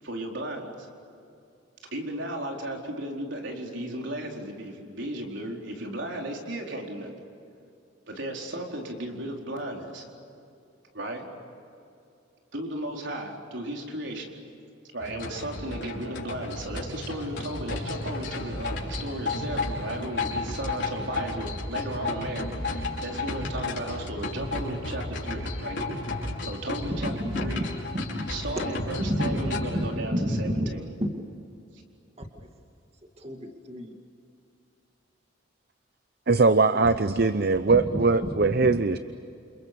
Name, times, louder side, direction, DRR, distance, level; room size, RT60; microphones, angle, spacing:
voice 1, 0.0-0.9 1.9-7.1 8.1-10.1 10.9-11.3 12.5-14.4 14.9-27.1 27.4-27.6 28.3-30.8, right 1 dB, 65° right, 1 dB, 4.4 m, -35 dB
sound 1, 15.0-29.8, left 2 dB, 60° left, 5.2 m, -33 dB
voice 2, 27.0-27.6 27.9-28.2 29.0-29.3 29.7-30.7 31.0-31.2 32.2-32.5 33.2-34.0 36.7-36.9 37.7-38.0 38.4-38.8, equal, 30° right, 3 dB, 2.2 m, -30 dB
voice 3, 36.3-39.0, right 3 dB, 50° right, 12 dB, 0.7 m, -21 dB
29.0 x 28.5 x 7.0 m, 2.6 s
head